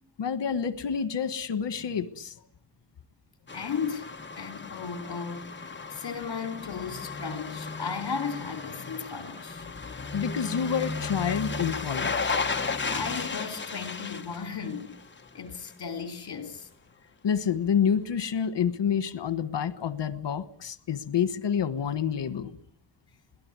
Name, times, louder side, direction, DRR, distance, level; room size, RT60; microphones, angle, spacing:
voice 1, 0.2-2.3 10.1-12.4 17.2-22.6, left 7 dB, 80° left, 1.4 m, -28 dB
voice 2, 3.5-5.5 5.9-9.7 12.9-15.0 15.3-16.7, left 6 dB, 60° left, 3.0 m, -35 dB
sound 1, 3.5-15.4 15.7-15.8, left 4 dB, 25° left, 1.0 m, -34 dB
22.0 x 17.5 x 9.5 m
wide cardioid pair, 165°, 42 cm